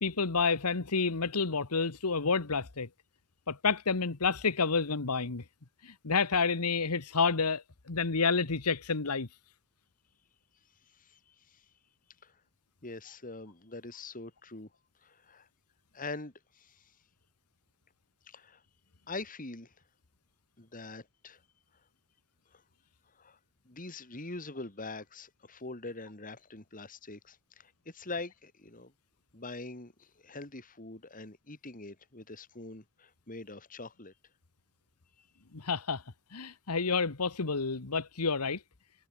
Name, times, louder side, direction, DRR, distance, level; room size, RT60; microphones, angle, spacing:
voice 1, 0.0-2.9 3.5-5.4 5.8-9.3 35.5-36.0 36.3-38.6, left 4 dB, 90° left, 1.4 m, -29 dB
voice 2, 10.9-11.6 12.2-12.4 12.8-14.7 15.0-15.5 15.9-16.9 18.3-18.6 19.1-19.7 20.6-21.4 22.5-22.6 23.1-23.4 23.6-28.9 29.3-34.1 35.2-35.3, left 3 dB, 40° left, 2.8 m, -44 dB
head